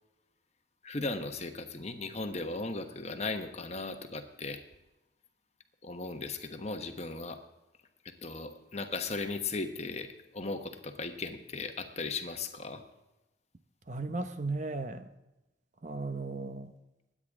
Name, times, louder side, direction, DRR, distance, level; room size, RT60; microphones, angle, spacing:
voice 1, 0.8-4.6 5.8-7.4 8.0-12.8, left 3 dB, 35° left, 6 dB, 1.1 m, -37 dB
voice 2, 13.9-15.1 15.8-16.8, right 3 dB, 40° right, 9 dB, 0.8 m, -36 dB
22.0 x 9.6 x 3.6 m, 1.0 s
head